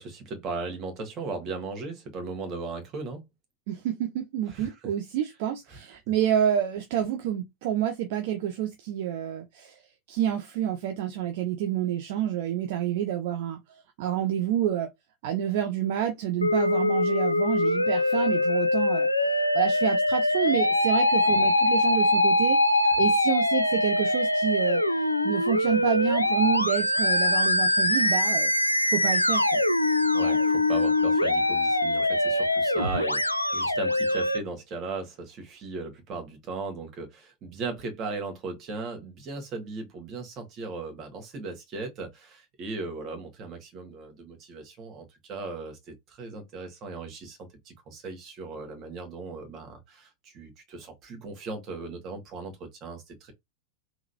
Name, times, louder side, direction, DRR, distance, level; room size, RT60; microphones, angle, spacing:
voice 1, 0.0-3.2 4.5-4.7 5.7-5.8 21.3-21.5 30.1-53.3, right 3 dB, 35° right, 1.7 m, -37 dB
voice 2, 3.7-9.8 10.1-13.6 14.0-14.9 15.2-19.1 19.5-24.8 25.2-28.5 28.9-29.6, right 10 dB, 50° right, 0.6 m, -28 dB
Musical instrument, 16.4-34.4, left 2 dB, 85° left, 0.4 m, -23 dB
3.8 x 2.9 x 2.8 m
figure-of-eight pair, 90°, 0 cm